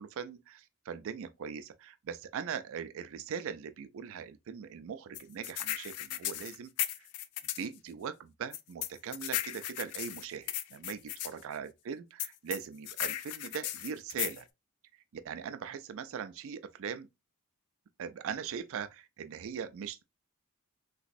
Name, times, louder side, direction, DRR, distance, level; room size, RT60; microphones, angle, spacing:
voice 1, 0.0-6.7 7.0-7.1 7.6-14.5 15.1-17.1 18.0-20.0, right 7 dB, 65° right, 0.4 m, -40 dB
sound 1, 5.1-7.7 8.5-11.3 12.2-14.4, left 12 dB, 80° left, 0.4 m, -36 dB
3.3 x 3.0 x 2.5 m
head